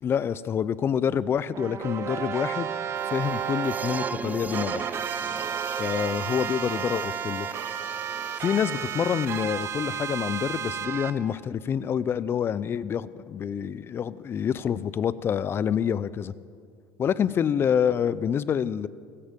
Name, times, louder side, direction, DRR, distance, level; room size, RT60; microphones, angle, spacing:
voice 1, 0.0-2.7 3.1-4.9 5.8-7.5 8.4-16.3 17.0-18.9, left 8 dB, 35° left, 18 dB, 0.6 m, -27 dB
sound 1, 1.5-4.1 4.5-11.1, right 8 dB, 45° right, 1.2 m, -32 dB
sound 2, 3.0-9.4, right 6 dB, 25° right, 0.4 m, -38 dB
16.5 x 15.5 x 5.3 m, 2.2 s
supercardioid pair, 100°, 7 cm